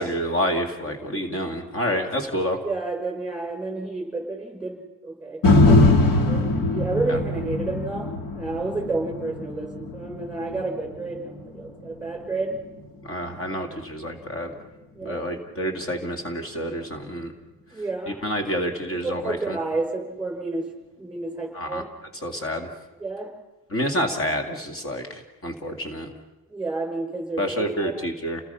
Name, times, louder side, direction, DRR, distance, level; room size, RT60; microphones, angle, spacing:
voice 1, 0.0-2.6 7.1-7.2 13.0-14.5 15.0-17.3 18.2-19.6 21.5-21.8 22.2-22.7 23.7-26.1 27.4-28.4, equal, 35° left, 4 dB, 2.6 m, -28 dB
voice 2, 2.6-12.6 14.9-15.2 17.7-18.2 19.0-20.6 21.0-21.9 23.0-23.3 26.5-27.9, right 3 dB, ahead, 3 dB, 6.3 m, -30 dB
sound 1, 5.4-13.6 14.1-14.2, left 2 dB, 60° left, 2.9 m, -23 dB
29.5 x 20.5 x 5.7 m, 1.1 s
cardioid pair, 135°, 37 cm